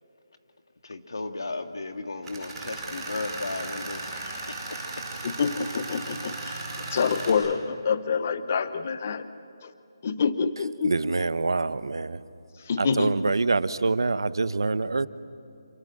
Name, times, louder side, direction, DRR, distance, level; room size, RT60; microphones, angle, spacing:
voice 1, 0.8-4.8, left 3 dB, 70° left, 2.2 m, -35 dB
Tools, 2.2-7.3, right 2 dB, 5° right, 5.3 m, -36 dB
voice 2, 5.2-6.6 6.9-9.3 9.6-9.7 10.0-10.9 12.6-13.3, left 5 dB, 25° left, 0.8 m, -27 dB
voice 3, 10.8-12.2 12.8-15.1, right 3 dB, 75° right, 1.1 m, -25 dB
28.0 x 26.5 x 7.7 m
hypercardioid pair, 175°, 2 cm